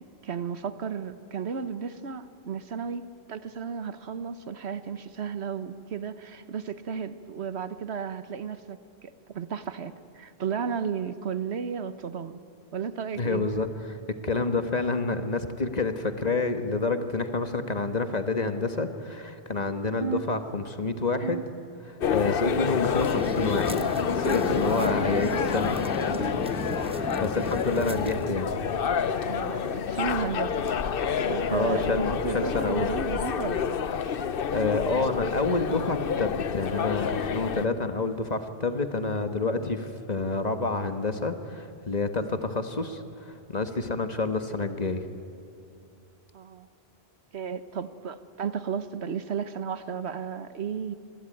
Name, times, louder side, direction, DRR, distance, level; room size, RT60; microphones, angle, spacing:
voice 1, 0.0-3.0 3.3-12.4 12.7-13.5 29.2-30.6 31.2-33.8 46.3-46.7 47.3-50.9, right 6 dB, 75° right, 12 dB, 1.3 m, -34 dB
voice 2, 13.2-14.0 14.2-21.4 21.8-23.8 24.1-25.7 26.0-28.5 31.5-32.9 34.5-45.1, left 3 dB, 40° left, 8 dB, 1.5 m, -28 dB
sound 1, 20.0-20.9 21.2-22.0 22.4-23.1 23.7-24.3 24.9-25.3 26.1-26.3 27.3-27.5 28.5-28.8 29.8-30.0 31.0-31.2 32.2-32.4 33.4-33.5 34.7-34.8, right 8 dB, 45° right, 1.4 m, -39 dB
sound 2, 22.0-37.7, left 7 dB, 60° left, 1.0 m, -28 dB
sound 3, 23.0-28.4, right 1 dB, 5° right, 1.2 m, -36 dB
26.0 x 21.0 x 9.1 m, 2.5 s
omnidirectional pair, 1.1 m